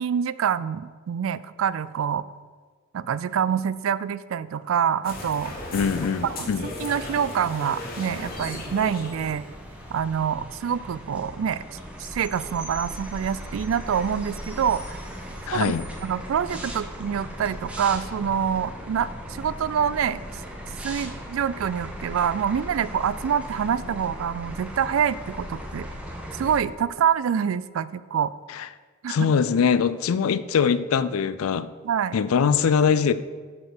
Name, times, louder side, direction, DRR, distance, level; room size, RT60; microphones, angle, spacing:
voice 1, 0.0-2.2 2.9-5.5 6.2-9.5 9.9-11.6 12.0-15.0 15.5-15.7 16.0-20.2 20.8-25.9 26.3-28.3 29.0-29.3 31.8-32.2, right 8 dB, 70° right, 17 dB, 0.3 m, -26 dB
sound 1, 5.0-10.1, left 2 dB, 45° left, 1.5 m, -36 dB
voice 2, 5.7-6.7 15.5-15.8 28.5-28.7 29.1-31.7 32.1-33.1, left 6 dB, 90° left, 15 dB, 0.4 m, -22 dB
sound 2, 8.1-26.6, equal, 5° right, 1.0 m, -38 dB
8.8 x 4.3 x 6.7 m, 1.5 s
head